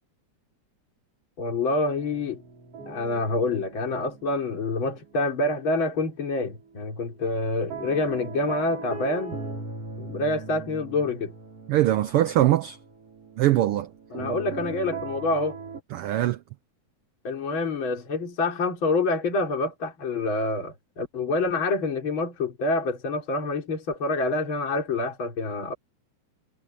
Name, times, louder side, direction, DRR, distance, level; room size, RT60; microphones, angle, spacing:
voice 1, 1.4-2.4 2.9-9.4 10.0-11.3 14.1-15.6 17.2-25.7, left 2 dB, 45° left, 4.1 m, -27 dB
sound 1, 2.0-6.0 6.3-15.8, right 4 dB, 50° right, 7.2 m, -40 dB
voice 2, 11.7-12.8 13.4-13.9 15.9-16.4, right 14 dB, 90° right, 1.2 m, -22 dB
omnidirectional pair, 3.3 m